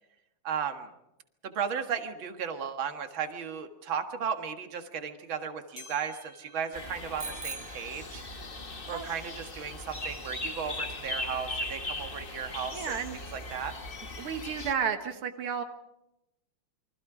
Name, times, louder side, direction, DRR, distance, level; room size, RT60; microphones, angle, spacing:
voice 1, 0.4-0.9 1.4-8.2 8.9-13.7, right 7 dB, 65° right, 6 dB, 2.5 m, -35 dB
sound 1, 5.8-10.4 10.9-11.0 11.8-11.9 12.8-12.9, left 4 dB, 70° left, 5.6 m, -56 dB
sound 2, 6.7-14.7, left 2 dB, 25° left, 1.7 m, -39 dB
Bicycle bell, 7.2-8.7, right 4 dB, 35° right, 0.9 m, -42 dB
voice 2, 12.7-13.2 14.2-15.6, right 7 dB, 90° right, 6 dB, 2.3 m, -32 dB
29.0 x 24.5 x 4.9 m, 0.87 s
omnidirectional pair, 2.3 m